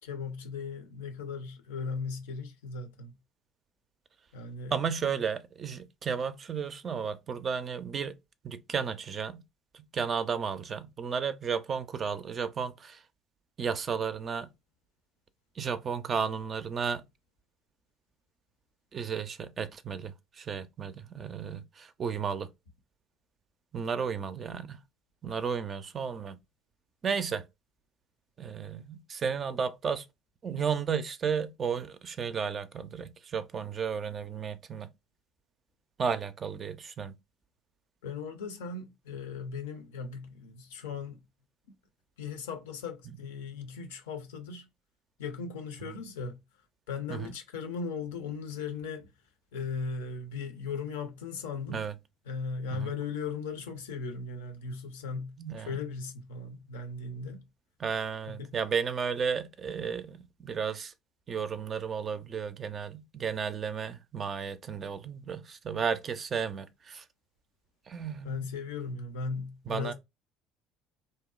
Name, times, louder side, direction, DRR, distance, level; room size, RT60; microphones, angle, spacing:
voice 1, 0.0-3.1 4.3-4.8 38.0-41.2 42.2-44.7 45.2-46.4 46.9-49.1 49.5-51.8 52.3-57.4 58.3-58.5 68.2-69.9, left 5 dB, 75° left, 0.4 m, -37 dB
voice 2, 4.7-8.1 8.4-9.4 9.7-13.0 13.6-14.5 15.6-17.0 18.9-22.5 23.7-24.8 25.2-26.4 27.0-27.5 28.4-30.1 30.4-34.9 36.0-37.2 43.1-43.2 45.9-46.0 47.1-47.3 51.7-52.0 52.7-52.9 55.4-55.8 57.8-60.9 61.3-67.1 67.9-68.5 69.7-69.9, right 6 dB, 40° right, 0.3 m, -33 dB
2.7 x 2.0 x 2.3 m
hypercardioid pair, 55°, 0 cm